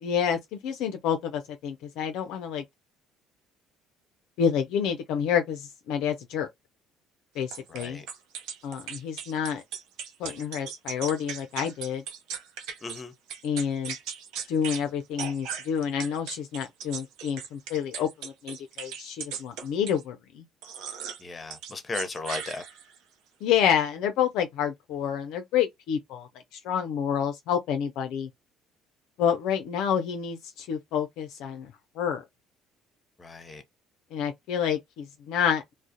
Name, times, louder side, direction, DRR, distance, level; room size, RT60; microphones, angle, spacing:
voice 1, 0.0-2.6 4.4-6.5 7.4-8.0 8.6-9.6 10.2-12.0 13.4-13.9 14.5-20.4 23.4-28.3 29.2-31.7 32.0-32.2 34.1-35.6, left 8 dB, 70° left, 0.3 m, -28 dB
sound 1, 7.5-13.0 13.3-14.8 15.2-20.0 20.6-21.2 21.5-23.0, right 7 dB, 70° right, 0.5 m, -38 dB
voice 2, 7.7-8.0 12.8-13.1 21.2-22.6 33.2-33.6, left 3 dB, 30° left, 0.7 m, -36 dB
2.3 x 2.0 x 2.6 m
hypercardioid pair, 60°, 0 cm